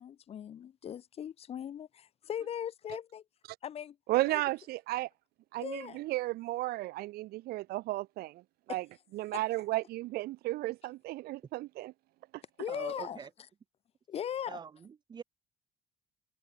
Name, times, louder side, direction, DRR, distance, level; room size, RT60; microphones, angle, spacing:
voice 1, 0.0-3.2 3.6-4.4 5.6-6.0 8.7-8.8 9.3-9.4 12.6-13.2 14.1-14.6, left 9 dB, 35° left, 7.2 m, -39 dB
voice 2, 4.1-5.1 5.5-8.4 8.7-8.8 9.1-11.9, right 18 dB, 65° right, 1.2 m, -34 dB
voice 3, 12.7-13.3 14.5-15.2, right 6 dB, 25° right, 1.9 m, -44 dB
cardioid pair, 175°, 17 cm